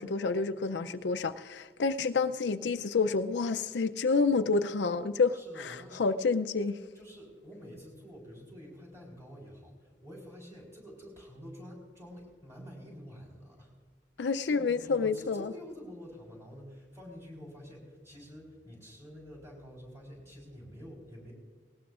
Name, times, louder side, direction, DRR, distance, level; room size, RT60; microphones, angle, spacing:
voice 1, 0.0-6.8 14.2-15.5, left 4 dB, 85° left, 0.5 m, -29 dB
voice 2, 5.3-6.2 6.9-13.7 14.2-21.3, equal, 15° right, 4.1 m, -48 dB
19.0 x 19.0 x 2.5 m
head